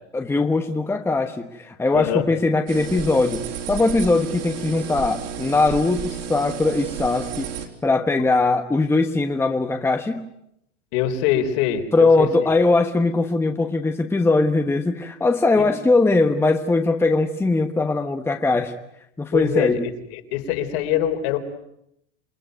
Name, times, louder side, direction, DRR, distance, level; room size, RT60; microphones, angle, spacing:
voice 1, 0.1-7.5 7.8-10.3 11.9-18.7 19.2-19.9, left 3 dB, 5° left, 6 dB, 1.1 m, -20 dB
voice 2, 1.9-2.3 10.9-12.3 15.6-15.7 19.3-21.4, left 10 dB, 60° left, 5 dB, 3.9 m, -23 dB
sound 1, 2.7-7.7, right 8 dB, 55° right, 4.3 m, -32 dB
28.0 x 20.5 x 9.2 m, 0.78 s
supercardioid pair, 140°, 37 cm